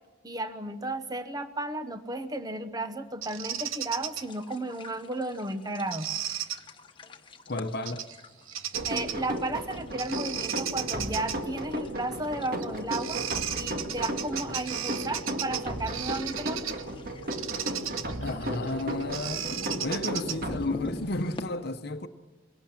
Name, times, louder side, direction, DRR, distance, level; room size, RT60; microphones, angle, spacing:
voice 1, 0.2-6.1 8.8-13.2 13.6-16.8, right 2 dB, 20° right, 1.0 m, -34 dB
Bird vocalization bird call bird song, 3.2-4.2 5.9-6.6 7.9-8.2 8.5-9.3 10.0-11.4 12.6-12.7 12.9-16.8 17.3-20.6, right 10 dB, 85° right, 1.1 m, -35 dB
sound 1, 4.0-21.4, left 1 dB, 25° left, 1.4 m, -47 dB
voice 2, 7.5-8.1 18.2-19.5 19.8-22.1, left 2 dB, 50° left, 1.0 m, -32 dB
sound 2, 8.7-21.2, right 1 dB, 45° right, 1.8 m, -35 dB
23.0 x 18.0 x 7.4 m
head